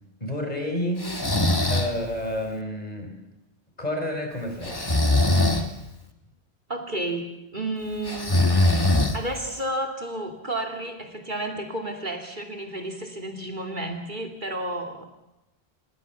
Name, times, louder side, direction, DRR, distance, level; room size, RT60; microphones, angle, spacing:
voice 1, 0.2-1.3 1.7-3.2 3.8-5.0, left 1 dB, 35° left, 3 dB, 5.2 m, -30 dB
Breathing, 1.0-1.9 4.6-5.7 8.1-9.5, left 2 dB, 20° left, 1.6 m, -21 dB
voice 2, 6.7-7.3 7.5-8.4 9.1-15.0, right 1 dB, 45° right, 3 dB, 2.7 m, -31 dB
27.0 x 20.5 x 7.1 m, 0.93 s
omnidirectional pair, 1.1 m